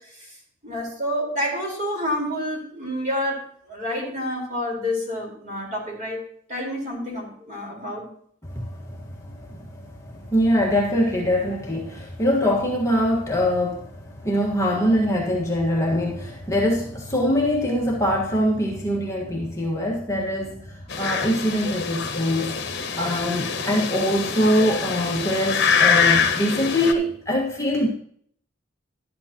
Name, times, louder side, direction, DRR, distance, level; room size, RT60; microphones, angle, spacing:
voice 1, 0.6-6.2 6.5-8.1, equal, 40° right, -1 dB, 4.3 m, -28 dB
voice 2, 8.5-9.0 9.3-22.6 23.0-27.9, equal, 15° left, -2 dB, 1.5 m, -23 dB
sound 1, 20.9-26.9, left 6 dB, 60° left, 1.2 m, -24 dB
12.0 x 11.0 x 2.9 m, 0.62 s
head